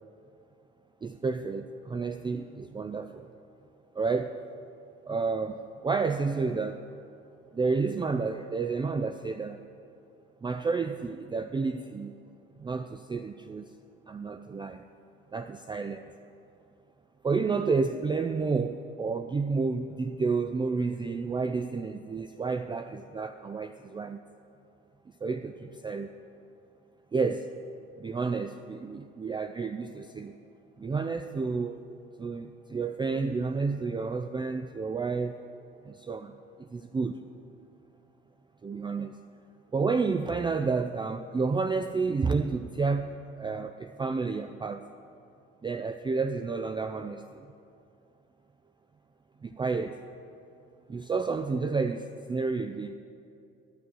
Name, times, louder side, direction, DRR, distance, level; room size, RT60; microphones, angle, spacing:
voice 1, 1.0-3.3 4.0-4.4 5.1-6.8 7.5-9.6 10.4-12.1 12.6-13.7 14.1-14.8 15.3-16.0 17.2-24.2 25.2-26.1 27.1-27.5 28.0-30.3 30.8-31.8 32.2-35.4 35.8-36.3 36.6-37.2 38.6-39.1 39.7-44.8 45.6-47.4 49.4-50.0 50.9-52.9, right 4 dB, 15° right, 8 dB, 0.4 m, -30 dB
10.0 x 8.5 x 6.2 m, 2.6 s
hypercardioid pair, 60°, 31 cm